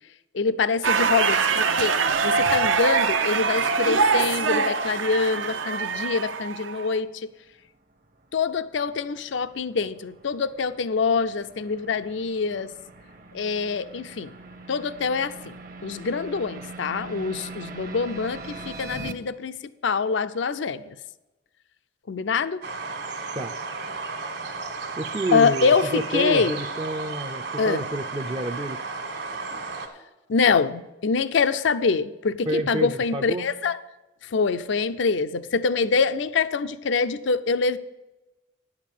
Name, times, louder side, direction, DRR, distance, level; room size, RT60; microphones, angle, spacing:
voice 1, 0.3-1.9 2.2-7.1 8.3-12.7 13.3-14.3 14.7-15.5 15.8-19.6 19.8-21.0 22.1-22.6 25.3-26.6 27.6-27.8 30.3-33.8 34.3-37.8, left 5 dB, 70° left, 13 dB, 0.5 m, -25 dB
sound 1, 0.8-7.0, right 5 dB, 85° right, 0.8 m, -23 dB
sound 2, 7.6-19.1, right 3 dB, 45° right, 0.8 m, -42 dB
sound 3, 22.6-29.9, right 4 dB, 60° right, 1.5 m, -33 dB
voice 2, 25.0-28.8 29.5-29.6 32.5-33.5, right 1 dB, 25° right, 5 dB, 0.4 m, -29 dB
10.0 x 7.3 x 6.6 m, 1.0 s
head